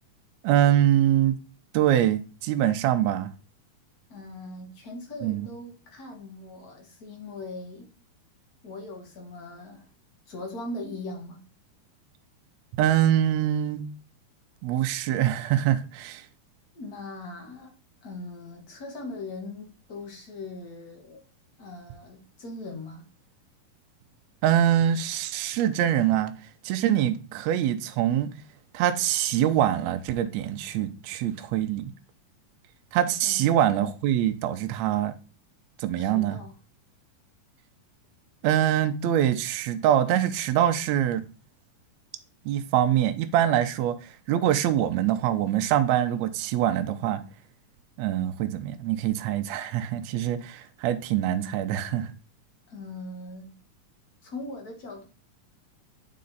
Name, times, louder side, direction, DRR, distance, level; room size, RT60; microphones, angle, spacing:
voice 1, 0.4-1.4 1.7-3.3 5.2-5.5 12.8-13.8 14.6-16.3 24.4-26.3 26.6-28.3 28.7-31.9 32.9-35.1 35.8-36.4 38.4-41.3 42.5-47.2 48.0-52.1, right 11 dB, 75° right, 1.7 m, -24 dB
voice 2, 4.1-7.9 8.6-9.9 10.3-11.4 16.7-17.7 18.0-21.2 21.6-23.1 33.2-33.5 36.0-36.6 52.7-53.5 54.2-55.1, left 2 dB, 65° left, 0.9 m, -40 dB
8.6 x 4.2 x 4.0 m
omnidirectional pair, 3.7 m